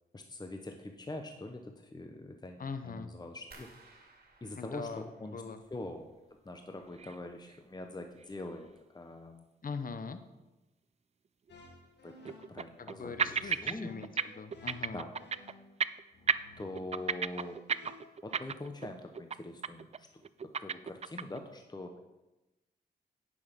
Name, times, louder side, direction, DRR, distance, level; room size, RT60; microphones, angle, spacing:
voice 1, 0.1-3.7 4.4-5.4 5.7-6.1 6.4-9.4 12.0-13.9 14.9-15.1 16.6-17.9 18.2-20.1 20.4-21.9, left 2 dB, 25° left, 5 dB, 0.9 m, -44 dB
voice 2, 2.6-3.1 4.6-5.6 9.6-10.2 12.8-15.0, left 5 dB, 50° left, 9 dB, 0.9 m, -41 dB
sound 1, 3.5-6.4 6.7-7.4 7.7-8.1 8.6-8.7, right 3 dB, 60° right, 2.0 m, -59 dB
sound 2, 7.0-7.2 7.5-7.6 8.2-8.3 11.5-11.6 12.2-12.9 13.2-13.8 14.0-14.2 14.5-15.5 15.8-16.0 16.3-18.9 19.1-19.4 19.6-20.0 20.2-21.4, right 6 dB, 40° right, 0.4 m, -33 dB
sound 3, 11.5-18.6, left 2 dB, 80° left, 1.6 m, -56 dB
9.5 x 6.4 x 5.2 m, 1.0 s
cardioid pair, 55°, 18 cm